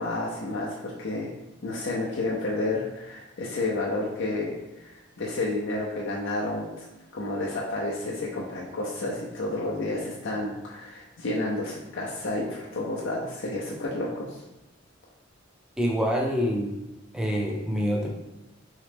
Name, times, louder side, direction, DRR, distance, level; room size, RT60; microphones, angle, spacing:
voice 1, 0.0-1.3 1.6-6.8 7.1-14.4, left 2 dB, 65° left, -4 dB, 0.6 m, -30 dB
voice 2, 15.8-16.8 17.1-18.1, equal, 5° right, -1 dB, 0.6 m, -26 dB
3.7 x 3.1 x 3.4 m, 1.0 s
head